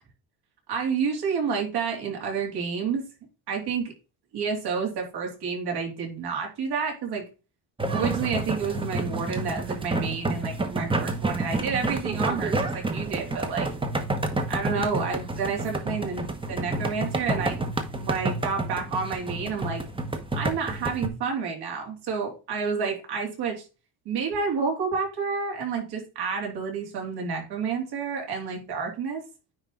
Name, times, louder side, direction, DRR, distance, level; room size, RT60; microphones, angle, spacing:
voice 1, 0.7-3.0 3.5-3.9 4.3-7.2 7.9-13.7 14.5-17.6 17.9-19.8 20.3-23.6 24.0-29.2, right 5 dB, 65° right, 0 dB, 3.5 m, -29 dB
sound 1, 7.8-21.1, right 2 dB, 10° right, 1.0 m, -29 dB
9.8 x 3.4 x 3.7 m, 0.31 s
cardioid pair, 135°, 43 cm